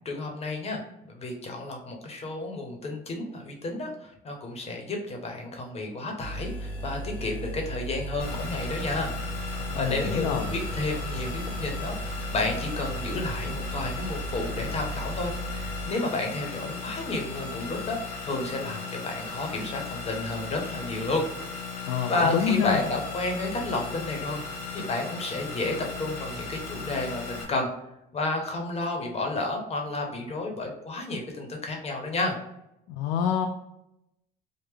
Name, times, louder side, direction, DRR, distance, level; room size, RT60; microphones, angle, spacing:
voice 1, 0.0-9.2 9.8-21.2 21.7-24.4 24.7-27.7 28.1-32.4, left 2 dB, 40° left, 2 dB, 1.0 m, -31 dB
sound 1, 6.2-15.9, right 1 dB, 10° left, 0.9 m, -36 dB
sound 2, 8.2-27.4, left 4 dB, 65° left, 1.2 m, -37 dB
voice 2, 9.6-10.5 21.9-22.8 32.9-33.5, left 7 dB, 85° left, 4 dB, 0.4 m, -27 dB
3.6 x 2.1 x 3.3 m, 0.83 s
cardioid pair, 110°, 17 cm